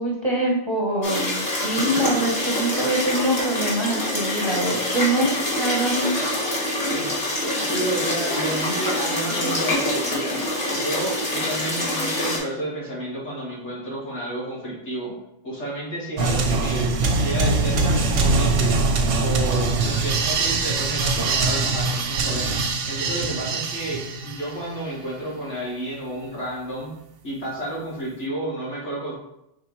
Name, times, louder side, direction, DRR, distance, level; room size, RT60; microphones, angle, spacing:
voice 1, 0.0-6.1, right 1 dB, 35° right, -3 dB, 0.5 m, -24 dB
sound 1, 1.0-12.4, left 1 dB, 40° left, 1.4 m, -25 dB
voice 2, 6.9-10.4 10.7-15.1 15.4-18.8 19.2-26.9 27.2-29.1, right 1 dB, 75° left, -6 dB, 2.0 m, -31 dB
sound 2, 16.2-24.6, right 3 dB, 90° right, 1.0 m, -22 dB
4.8 x 3.3 x 3.0 m, 0.81 s
omnidirectional pair, 1.2 m